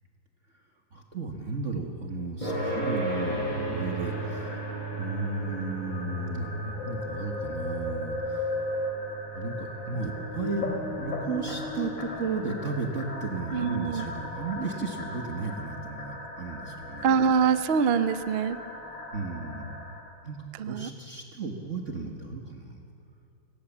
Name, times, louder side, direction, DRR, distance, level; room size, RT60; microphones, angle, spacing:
voice 1, 0.9-4.6 5.0-8.5 9.4-10.6 11.0-17.1 19.1-19.8 20.2-20.4 20.6-22.8, right 3 dB, 40° right, 3 dB, 1.7 m, -34 dB
sound 1, 2.4-17.3, right 1 dB, 20° left, 8.2 m, -38 dB
sound 2, 4.0-20.0, left 1 dB, 65° left, 4.5 m, -37 dB
voice 2, 13.5-14.1 17.0-18.6 20.6-20.9, right 6 dB, 75° right, 12 dB, 0.5 m, -24 dB
30.0 x 18.0 x 7.3 m, 2.7 s
omnidirectional pair, 2.2 m